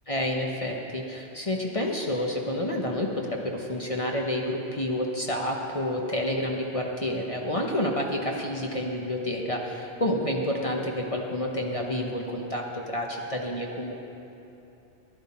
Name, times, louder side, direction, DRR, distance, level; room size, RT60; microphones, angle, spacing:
voice 1, 0.1-13.9, left 1 dB, 30° left, 0 dB, 0.9 m, -29 dB
14.5 x 11.0 x 4.3 m, 2.8 s
omnidirectional pair, 1.2 m